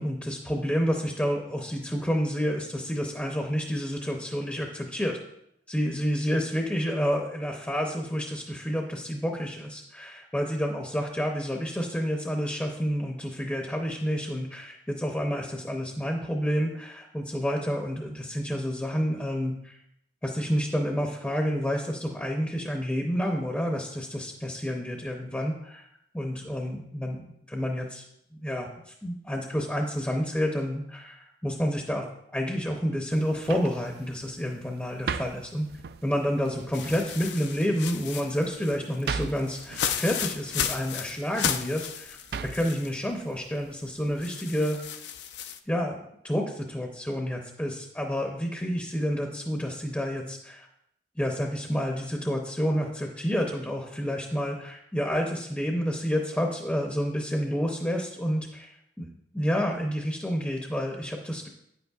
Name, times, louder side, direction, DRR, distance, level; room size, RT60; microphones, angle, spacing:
voice 1, 0.0-5.2 5.7-19.8 20.2-25.9 26.1-28.0 28.3-32.1 32.3-35.7 36.0-44.8 45.7-50.7 51.2-59.1 59.3-61.5, equal, 10° left, 1 dB, 0.6 m, -29 dB
sound 1, 33.1-44.3, right 6 dB, 60° right, 0.3 m, -41 dB
sound 2, 36.7-43.0 43.3-43.4 44.2-45.6, left 8 dB, 80° left, 0.5 m, -34 dB
9.3 x 8.0 x 2.4 m, 0.77 s
head